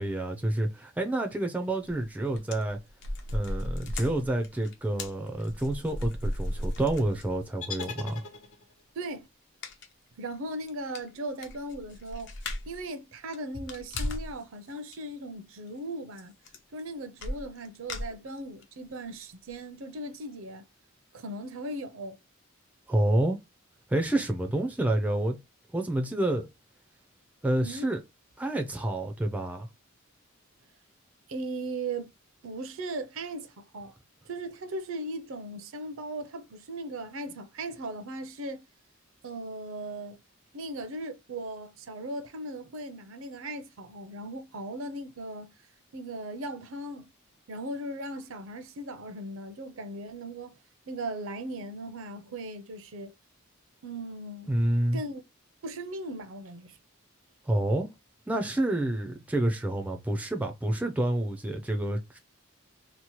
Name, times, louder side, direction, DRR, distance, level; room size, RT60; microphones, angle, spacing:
voice 1, 0.0-2.8 3.3-8.2 22.9-23.4 23.9-25.4 25.7-26.5 27.4-28.0 28.4-29.7 54.5-55.0 57.5-57.9 58.3-62.2, right 1 dB, 5° right, 0.3 m, -28 dB
sound 1, 1.9-2.0 2.3-7.5 7.8-7.9 9.6-9.9 10.3-10.4 10.7-10.8 10.9-12.8 13.2-14.4 14.7-15.0 16.2-16.3 16.5-16.8 17.2-18.6 19.1-19.2 19.5-19.6, left 1 dB, 60° left, 0.6 m, -36 dB
sound 2, 7.6-8.9, left 4 dB, 85° left, 0.8 m, -40 dB
voice 2, 8.9-9.3 10.2-12.4 12.7-16.3 16.7-20.7 21.1-22.2 27.6-27.9 31.3-32.1 32.4-33.9 34.2-38.7 39.2-40.2 40.5-45.5 45.9-47.1 47.5-50.5 50.9-53.1 53.8-54.5 54.9-55.2 55.6-56.8, right 1 dB, 65° right, 0.5 m, -38 dB
2.8 x 2.1 x 2.9 m
head